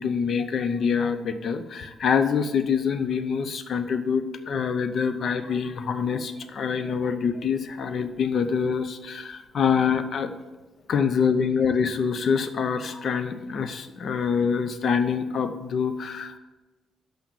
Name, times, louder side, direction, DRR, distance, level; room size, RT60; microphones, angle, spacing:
voice 1, 0.0-10.3 10.9-16.4, left 6 dB, 60° left, 10 dB, 0.7 m, -25 dB
5.8 x 5.7 x 7.0 m, 1.2 s
supercardioid pair, 50°, 0 cm